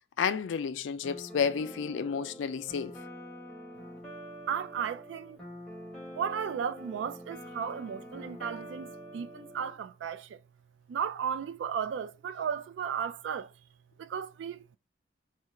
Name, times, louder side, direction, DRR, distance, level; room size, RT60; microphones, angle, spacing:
voice 1, 0.2-3.0, left 6 dB, 85° left, 0.3 m, -31 dB
sound 1, 1.0-9.7, equal, 5° left, 1.0 m, -46 dB
voice 2, 4.5-5.4 6.1-10.4 10.9-13.5 14.0-14.8, right 7 dB, 80° right, 0.3 m, -35 dB
2.8 x 2.4 x 4.1 m
head